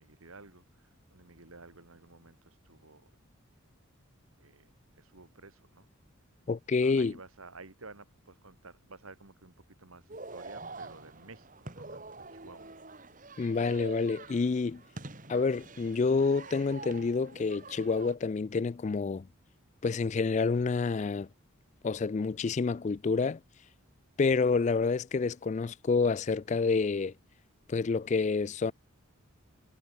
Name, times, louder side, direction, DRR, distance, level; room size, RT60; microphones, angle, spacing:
voice 1, 0.0-3.1 4.4-5.9 6.8-9.5 9.8-12.7, right 3 dB, 75° right, 2.6 m, -53 dB
voice 2, 6.5-7.1 13.4-14.8 15.3-19.3 19.8-21.3 21.8-23.4 24.2-27.1 27.7-28.7, left 4 dB, 35° left, 0.3 m, -28 dB
sound 1, 10.1-18.1, right 3 dB, 35° right, 2.3 m, -46 dB
head